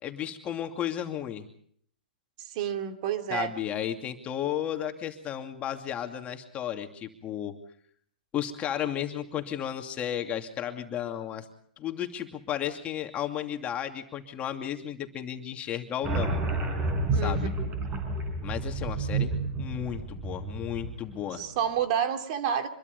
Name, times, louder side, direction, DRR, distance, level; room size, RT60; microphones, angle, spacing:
voice 1, 0.0-1.4 3.3-7.5 8.3-11.5 11.8-16.3 17.1-17.5 18.4-21.4, left 10 dB, 25° left, 5 dB, 2.6 m, -33 dB
voice 2, 2.4-3.5 17.1-17.5 21.4-22.7, right 9 dB, 50° right, 7 dB, 2.8 m, -29 dB
sound 1, 16.0-21.3, right 3 dB, 25° right, 6.2 m, -30 dB
25.5 x 22.5 x 5.4 m, 0.62 s
hypercardioid pair, 120°, 5 cm